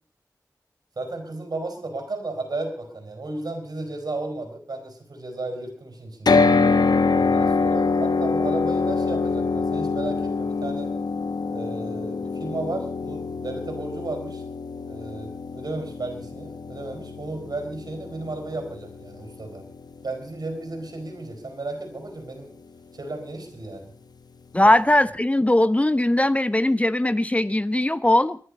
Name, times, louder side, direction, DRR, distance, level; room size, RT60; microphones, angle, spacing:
voice 1, 1.0-6.5 7.1-10.9 11.5-14.4 14.9-19.6 20.0-22.5 22.9-23.9 24.6-24.7, right 2 dB, 75° right, 6 dB, 4.8 m, -34 dB
sound 1, 6.3-20.4, left 4 dB, 80° left, 1.1 m, -25 dB
voice 2, 24.5-28.4, left 1 dB, 20° left, 16 dB, 0.6 m, -20 dB
22.5 x 10.5 x 5.3 m, 0.42 s
wide cardioid pair, 55°, 7 cm